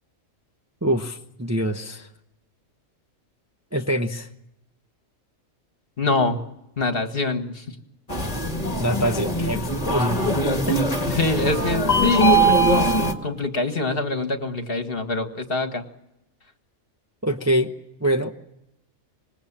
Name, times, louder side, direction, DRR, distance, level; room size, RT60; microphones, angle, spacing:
voice 1, 0.8-2.1 3.7-4.3 8.8-10.3 10.7-10.8 11.1-11.2 17.2-17.7 18.0-18.3, right 1 dB, 15° right, 4 dB, 0.9 m, -24 dB
voice 2, 6.0-6.4 6.8-7.7 11.1-12.9 13.2-15.8, left 3 dB, 45° left, 7 dB, 1.9 m, -25 dB
sound 1, 8.1-13.1, right 1 dB, 30° left, 1.9 m, -21 dB
26.0 x 20.5 x 7.4 m, 0.87 s
omnidirectional pair, 1.4 m